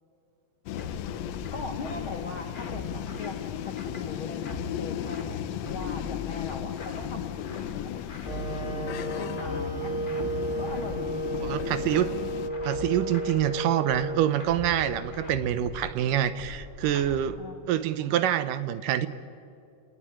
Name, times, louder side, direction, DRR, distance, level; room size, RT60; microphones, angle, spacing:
sound 1, 0.7-12.5, left 11 dB, 90° left, 1.5 m, -36 dB
sound 2, 0.8-17.4, left 1 dB, 35° left, 0.7 m, -41 dB
voice 1, 0.9-3.4 3.6-8.1 8.4-9.9 10.6-11.4 17.4-17.7, left 4 dB, 55° left, 4 dB, 1.4 m, -40 dB
Wind instrument woodwind instrument, 8.2-16.2, right 1 dB, 15° right, 2.8 m, -34 dB
voice 2, 11.4-12.1 12.6-17.4 17.7-19.1, right 11 dB, 75° right, 13 dB, 2.3 m, -26 dB
30.0 x 18.5 x 10.0 m, 2.6 s
omnidirectional pair, 4.0 m